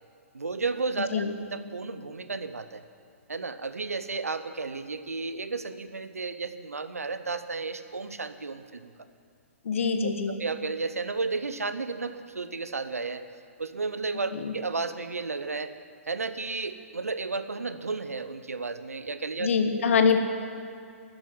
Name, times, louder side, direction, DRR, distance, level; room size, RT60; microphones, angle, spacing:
voice 1, 0.3-1.2 1.5-2.8 3.3-8.9 10.0-13.2 13.6-15.7 16.1-19.5, right 4 dB, 85° right, 12 dB, 0.8 m, -33 dB
voice 2, 9.6-10.3 14.3-14.5 19.4-20.2, left 6 dB, 60° left, 6 dB, 1.4 m, -24 dB
13.0 x 7.8 x 9.8 m, 2.3 s
figure-of-eight pair, 120°, 8 cm